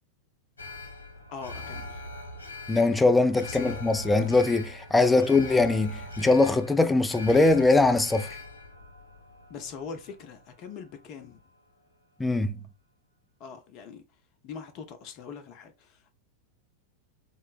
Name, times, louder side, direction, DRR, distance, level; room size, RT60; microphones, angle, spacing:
Alarm, 0.6-10.8 11.2-11.3, left 2 dB, 70° left, 0.8 m, -42 dB
voice 1, 1.3-2.0 3.4-3.8 5.0-5.3 9.5-11.4 13.4-14.0 14.4-16.1, left 6 dB, 40° left, 0.8 m, -41 dB
voice 2, 2.7-8.3 12.2-12.6, left 3 dB, 10° left, 0.4 m, -22 dB
3.8 x 2.1 x 3.9 m
figure-of-eight pair, 90°, 0 cm